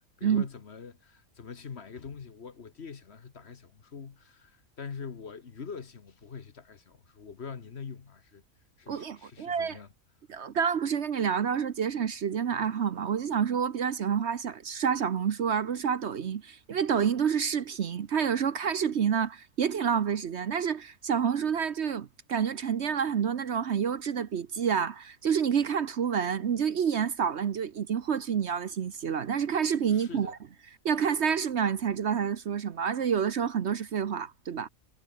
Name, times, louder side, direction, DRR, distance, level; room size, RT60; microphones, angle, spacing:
voice 1, 0.2-8.4 8.8-9.9 29.9-30.3, left 5 dB, 50° left, 1.5 m, -44 dB
voice 2, 8.9-9.8 10.3-30.4 30.8-34.7, right 7 dB, 55° right, 1.1 m, -28 dB
omnidirectional pair, 1.5 m